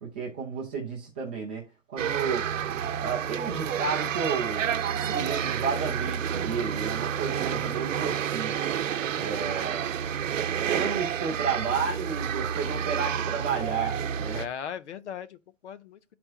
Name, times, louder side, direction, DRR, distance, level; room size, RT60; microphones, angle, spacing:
voice 1, 0.0-1.6 1.9-2.5 3.0-8.5 9.1-9.9 10.7-14.4, right 5 dB, 10° right, 0.4 m, -32 dB
sound 1, 2.0-14.5, right 8 dB, 80° right, 0.7 m, -30 dB
voice 2, 8.8-9.2 14.3-16.1, left 8 dB, 65° left, 0.8 m, -39 dB
11.5 x 4.3 x 2.3 m
hypercardioid pair, 155°, 38 cm